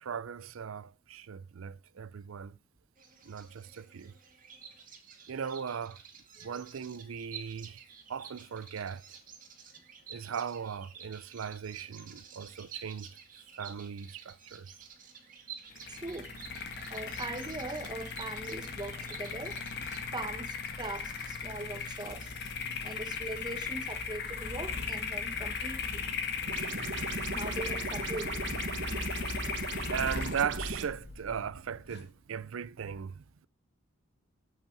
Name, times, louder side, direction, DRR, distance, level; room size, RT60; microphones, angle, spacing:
voice 1, 0.0-2.5 3.3-4.1 5.3-6.0 6.4-7.8 8.1-9.0 10.1-13.1 13.6-14.7 29.9-33.5, right 7 dB, 85° right, 0.5 m, -38 dB
Bird vocalization bird call bird song, 3.0-22.5, right 7 dB, 40° right, 2.0 m, -51 dB
sound 1, 15.7-32.0, left 5 dB, 55° left, 1.9 m, -37 dB
voice 2, 15.8-16.3 16.8-19.6 20.1-22.3 22.8-26.1 27.3-28.5, right 2 dB, 20° right, 0.8 m, -41 dB
sound 2, 26.5-30.9, right 4 dB, 60° right, 1.1 m, -38 dB
8.2 x 7.5 x 6.9 m
head